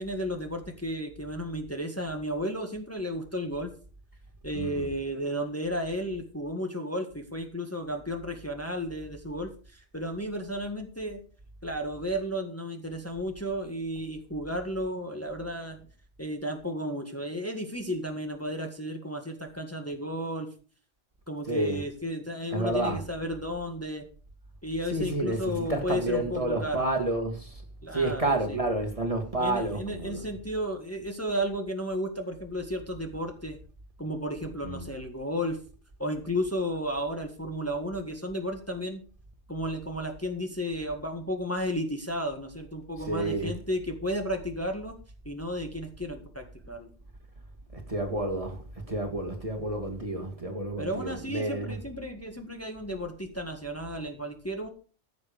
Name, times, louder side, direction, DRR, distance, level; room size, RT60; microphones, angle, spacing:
voice 1, 0.0-3.7 4.4-11.2 11.6-15.8 16.2-20.5 21.3-24.1 24.6-26.9 27.8-28.6 29.4-33.6 34.0-35.6 36.0-39.0 39.5-45.0 45.3-46.9 50.8-54.7, equal, 10° left, 1.7 m, -33 dB
voice 2, 4.5-4.9 21.5-21.8 22.5-23.0 24.9-27.6 27.9-30.2 34.6-34.9 43.1-43.5 47.7-48.6 48.9-51.8, right 2 dB, 30° right, 1.9 m, -30 dB
15.0 x 7.1 x 5.2 m
omnidirectional pair, 1.2 m